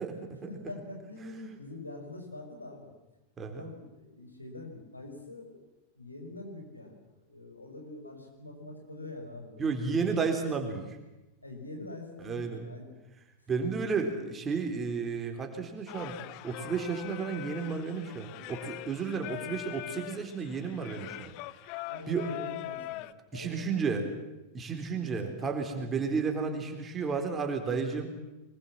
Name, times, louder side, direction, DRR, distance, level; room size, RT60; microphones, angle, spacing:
voice 1, 0.0-2.9 3.5-5.6 5.9-10.3 11.4-13.0 13.5-14.0 19.1-19.2 21.8-23.1 23.3-24.3 24.9-25.5 25.8-25.9, left 2 dB, 85° left, 2 dB, 5.5 m, -45 dB
voice 2, 3.4-3.7 9.6-11.0 12.2-12.7 13.5-16.2 16.4-21.3 22.1-22.3 23.3-24.1 24.5-28.1, right 5 dB, 20° right, 4 dB, 4.0 m, -32 dB
Singing, 15.9-23.1, left 17 dB, 45° left, 0.8 m, -42 dB
24.0 x 21.5 x 7.5 m, 1.0 s
figure-of-eight pair, 90°, 0 cm